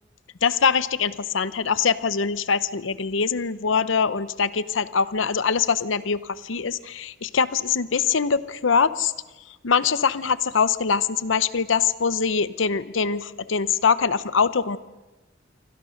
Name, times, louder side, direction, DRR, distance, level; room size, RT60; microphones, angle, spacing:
voice 1, 0.4-9.1 9.6-14.8, left 6 dB, 80° left, 15 dB, 0.8 m, -23 dB
28.0 x 24.5 x 6.5 m, 1.1 s
head